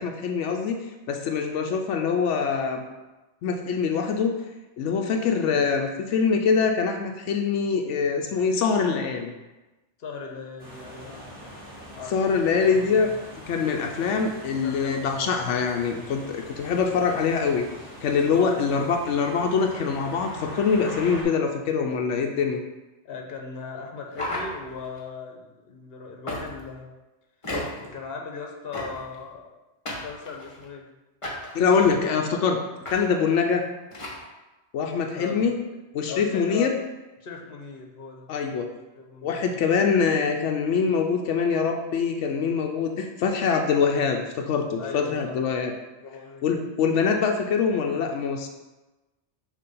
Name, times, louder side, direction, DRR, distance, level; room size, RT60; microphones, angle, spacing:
voice 1, 0.0-2.8 3.4-4.3 4.8-9.3 12.1-13.1 13.5-17.7 18.0-22.6 31.5-32.6 32.9-33.6 34.7-35.5 35.9-36.7 38.3-38.7 39.2-45.7 46.4-48.5, left 5 dB, 90° left, 3 dB, 0.9 m, -24 dB
voice 2, 10.0-11.3 12.0-12.1 12.7-13.1 14.2-14.3 14.6-15.3 16.9-17.1 18.2-19.1 23.0-26.9 27.7-29.5 29.9-30.9 31.7-32.3 35.1-35.8 36.1-36.7 37.2-38.3 39.0-39.5 44.8-45.4 46.0-46.7, left 5 dB, 60° left, 2 dB, 1.1 m, -38 dB
sound 1, 10.6-21.2, equal, 5° right, 1.8 m, -42 dB
sound 2, 24.1-25.0 26.3-26.7 27.4-27.9 28.7-29.2 29.9-30.7 31.2-31.9 32.8-33.0 33.3-33.4 33.9-34.2, left 1 dB, 30° left, 1.1 m, -34 dB
6.6 x 2.9 x 5.4 m, 1.1 s
omnidirectional pair, 1.2 m